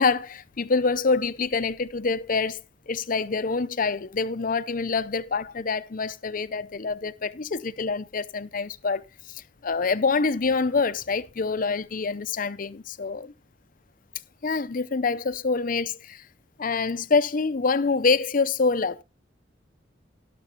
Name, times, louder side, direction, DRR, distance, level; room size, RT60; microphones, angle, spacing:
voice 1, 0.0-13.3 14.4-16.2 16.6-19.0, left 4 dB, 45° left, 0.6 m, -26 dB
12.0 x 12.0 x 2.9 m
head